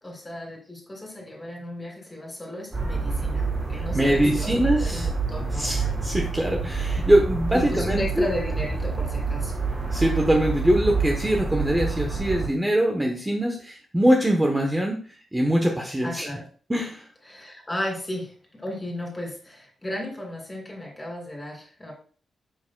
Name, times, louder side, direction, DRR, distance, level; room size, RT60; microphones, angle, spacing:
voice 1, 0.0-5.7 7.5-9.6 16.0-16.4 17.3-21.9, left 1 dB, 15° left, 0 dB, 2.7 m, -34 dB
sound 1, 2.7-12.5, right 4 dB, 25° right, 4.4 m, -28 dB
voice 2, 3.8-5.1 5.5-8.3 9.9-15.0 15.3-16.3 16.7-17.0, right 1 dB, 10° right, 1 dB, 0.9 m, -23 dB
10.0 x 7.3 x 2.2 m, 0.41 s
wide cardioid pair, 155°, 0 cm